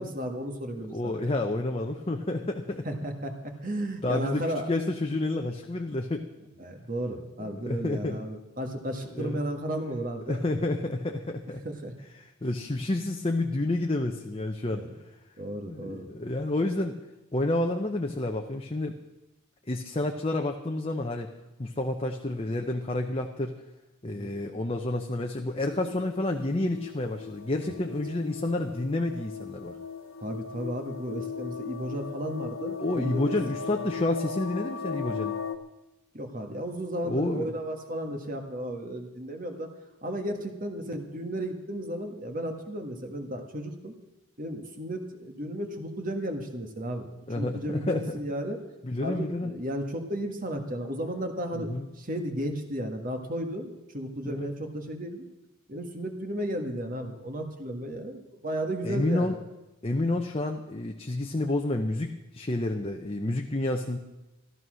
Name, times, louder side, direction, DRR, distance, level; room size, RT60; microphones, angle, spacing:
voice 1, 0.0-1.3 2.8-4.7 6.6-10.4 11.6-11.9 14.8-15.0 15.4-16.1 24.0-24.3 27.6-27.8 30.2-33.4 36.1-39.7 40.0-43.9 44.4-48.6 49.0-55.2 55.7-59.4, right 1 dB, 40° right, 5 dB, 1.7 m, -34 dB
voice 2, 0.9-2.9 4.0-6.2 7.4-8.2 9.1-9.4 10.3-11.6 12.2-14.8 15.7-17.0 17.3-19.0 19.7-21.3 21.6-23.5 24.0-29.8 32.8-35.3 37.0-37.5 47.3-48.0 48.8-49.5 51.5-51.8 54.2-54.5 58.8-59.4 59.8-64.0, left 2 dB, 25° left, 3 dB, 0.7 m, -29 dB
sound 1, 25.6-35.6, left 7 dB, 65° left, 0.9 m, -38 dB
14.0 x 12.5 x 6.3 m, 1.0 s
head